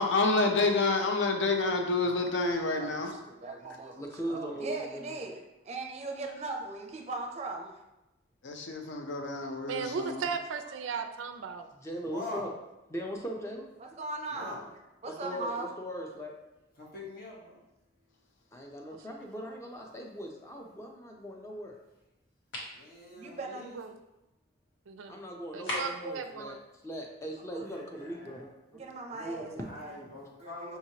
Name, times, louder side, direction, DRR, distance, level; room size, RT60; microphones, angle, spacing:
voice 1, 0.0-3.1 8.4-10.2, left 3 dB, 65° left, 3 dB, 0.6 m, -28 dB
voice 2, 2.6-7.8 10.7-10.8 13.8-15.7 23.1-24.0 27.5-27.7 28.7-29.7 30.4-30.7, right 3 dB, 35° right, 2 dB, 0.5 m, -39 dB
voice 3, 4.0-5.2 11.7-12.5 12.9-13.7 15.1-16.3 18.5-21.7 25.1-26.6 26.8-29.9, equal, 15° left, 1 dB, 0.5 m, -39 dB
voice 4, 9.7-11.7 19.5-19.6 23.7-23.9 24.9-25.1 25.5-26.6, right 5 dB, 85° right, 8 dB, 0.4 m, -36 dB
voice 5, 12.0-12.5 14.3-14.6 16.8-17.6 22.7-23.8 27.6-28.5 29.1-29.3 29.6-30.8, left 2 dB, 50° left, -4 dB, 1.1 m, -44 dB
sound 1, 22.5-22.8 25.7-26.1, equal, 80° left, 1.0 m, -35 dB
5.6 x 3.0 x 2.8 m, 0.95 s
head